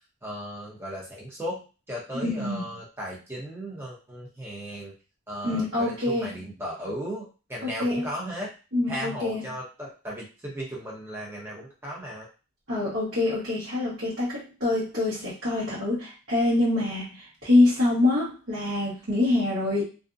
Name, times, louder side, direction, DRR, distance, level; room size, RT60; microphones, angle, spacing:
voice 1, 0.2-4.9 5.3-8.5 8.9-12.3, equal, 10° right, -4 dB, 0.7 m, -36 dB
voice 2, 2.2-2.6 5.4-6.4 7.8-8.1 8.7-9.5 12.7-19.8, left 2 dB, 50° right, -10 dB, 1.1 m, -25 dB
2.5 x 2.1 x 2.5 m, 0.33 s
head